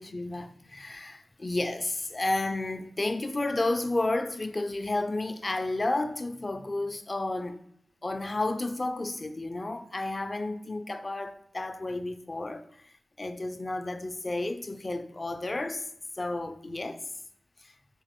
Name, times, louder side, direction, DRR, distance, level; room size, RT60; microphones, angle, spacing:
voice 1, 0.0-7.6 8.0-12.6 13.2-15.9 16.1-17.0 17.6-17.7, left 2 dB, 35° left, 0.3 m, -31 dB
3.8 x 2.9 x 3.0 m
cardioid pair, 55°, 0 cm